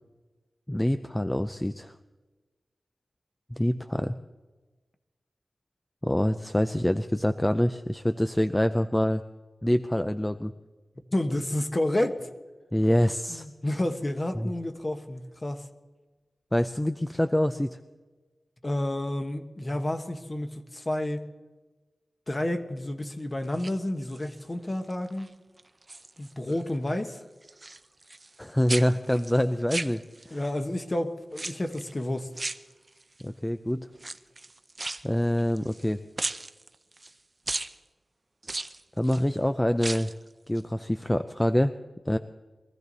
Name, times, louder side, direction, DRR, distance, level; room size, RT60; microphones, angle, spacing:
voice 1, 0.7-1.9 3.5-4.1 6.0-9.2 9.6-10.5 12.7-13.4 14.4-14.5 16.5-17.8 28.4-30.0 30.3-30.4 33.2-33.9 35.0-36.0 39.0-40.1 40.5-41.7 42.1-42.2, equal, 10° left, 10 dB, 0.5 m, -25 dB
voice 2, 11.1-12.3 13.3-15.7 18.6-21.3 22.3-25.3 26.2-27.2 30.3-32.3, left 1 dB, 30° left, 7 dB, 1.3 m, -30 dB
sound 1, 23.4-24.4 24.9-25.3 25.6-26.6 26.9-28.4 28.7-30.5 31.3-31.9 32.3-33.2 33.9-35.9 36.2-37.1 37.5-37.7 38.4-39.2 39.7-40.2 40.5-40.6, right 2 dB, 30° right, 0.6 m, -36 dB
23.0 x 15.0 x 4.1 m, 1.2 s
wide cardioid pair, 100°, 0 cm